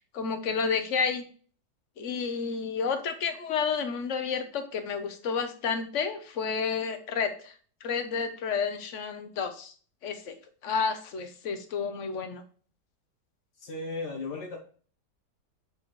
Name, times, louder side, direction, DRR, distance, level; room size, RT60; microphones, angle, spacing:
voice 1, 0.1-1.2 2.0-7.5 7.8-9.7 10.0-10.3 10.6-12.4, left 5 dB, 50° left, 7 dB, 1.0 m, -30 dB
voice 2, 13.6-14.6, left 3 dB, 70° left, 0 dB, 1.7 m, -35 dB
7.4 x 4.4 x 3.0 m, 0.42 s
omnidirectional pair, 1.9 m